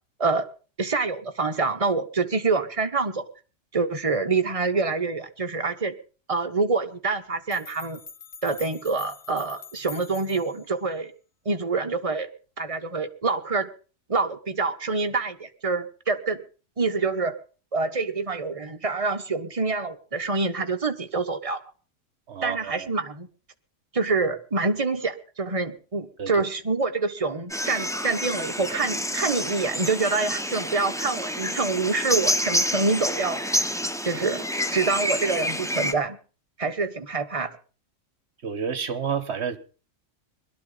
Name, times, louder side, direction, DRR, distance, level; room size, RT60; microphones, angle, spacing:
voice 1, 0.8-3.2 3.7-5.9 6.3-8.0 8.4-11.1 11.4-12.3 12.6-13.7 14.1-16.4 16.8-17.4 17.7-21.6 22.4-23.3 23.9-33.4 34.0-34.5 34.7-36.2 36.6-37.6, right 4 dB, 25° right, 1.2 m, -26 dB
sound 1, 7.1-7.2 7.5-10.7, left 6 dB, 50° left, 1.5 m, -44 dB
voice 2, 22.3-22.9 26.2-26.3 36.6-36.7 38.4-39.6, right 7 dB, 55° right, 1.5 m, -30 dB
sound 2, 27.5-35.9, equal, 5° left, 0.7 m, -28 dB
21.5 x 12.0 x 4.0 m
omnidirectional pair, 1.4 m